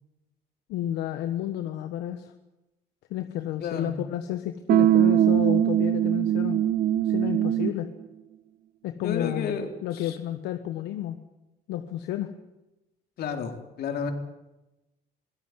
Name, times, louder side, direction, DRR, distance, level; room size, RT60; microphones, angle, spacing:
voice 1, 0.7-2.3 3.1-6.6 7.0-7.9 8.8-11.2 11.7-12.3, left 12 dB, 90° left, 8 dB, 1.4 m, -31 dB
voice 2, 3.6-3.9 9.0-10.2 13.2-14.1, left 6 dB, 70° left, 5 dB, 4.0 m, -31 dB
sound 1, 4.7-7.9, right 11 dB, 55° right, 0.7 m, -21 dB
23.0 x 17.0 x 9.7 m, 1.0 s
cardioid pair, 110°, 17 cm